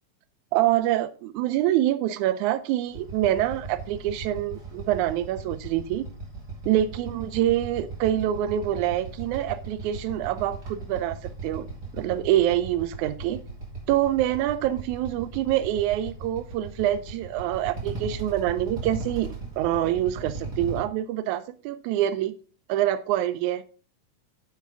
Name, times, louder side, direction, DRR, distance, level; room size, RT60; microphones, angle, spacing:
voice 1, 0.5-6.1 6.7-11.2 11.4-11.7 11.9-13.4 13.9-19.3 19.6-22.3 22.7-23.6, right 12 dB, 90° right, 1.7 m, -25 dB
Motorcycle / Idling, 2.9-20.8, right 3 dB, 30° right, 3.2 m, -38 dB
10.5 x 7.5 x 3.5 m
omnidirectional pair, 4.1 m